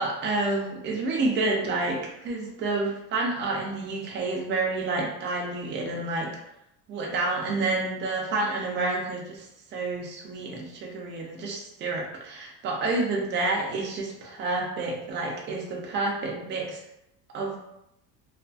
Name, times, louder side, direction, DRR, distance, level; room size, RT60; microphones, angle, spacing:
voice 1, 0.0-6.3 6.9-16.8 17.3-17.6, right 3 dB, 30° right, -1 dB, 0.5 m, -29 dB
2.5 x 2.4 x 2.3 m, 0.81 s
cardioid pair, 155°, 38 cm